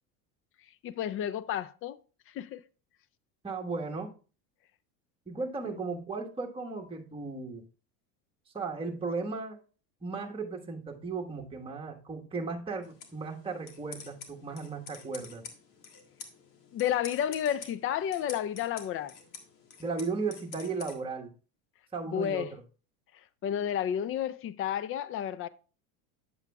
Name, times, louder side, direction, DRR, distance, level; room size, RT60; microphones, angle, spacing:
voice 1, 0.8-2.0 2.3-2.6 16.7-19.1 22.1-22.5 23.4-25.5, left 10 dB, 30° left, 0.4 m, -31 dB
voice 2, 3.4-4.1 5.3-7.7 8.5-9.6 10.0-15.5 19.8-21.3 21.9-22.6, right 4 dB, 10° right, 1.3 m, -36 dB
sound 1, 12.8-20.9, left 5 dB, 70° left, 1.8 m, -48 dB
9.7 x 7.2 x 2.3 m
hypercardioid pair, 90°, 47 cm